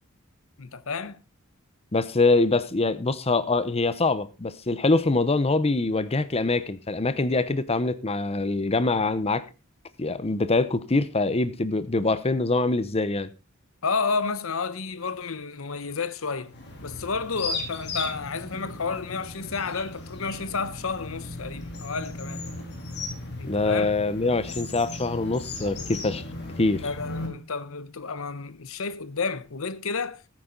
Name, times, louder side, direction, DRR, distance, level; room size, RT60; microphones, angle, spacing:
voice 1, 0.6-1.2 13.8-16.5 16.8-22.4 23.4-23.9 26.8-30.2, left 4 dB, 75° left, 0.9 m, -31 dB
voice 2, 1.9-9.4 10.0-13.3 23.4-26.2 26.6-26.9, left 3 dB, 30° left, 0.8 m, -24 dB
sound 1, 16.5-27.3, left 2 dB, 55° left, 3.4 m, -36 dB
14.5 x 9.0 x 3.9 m
head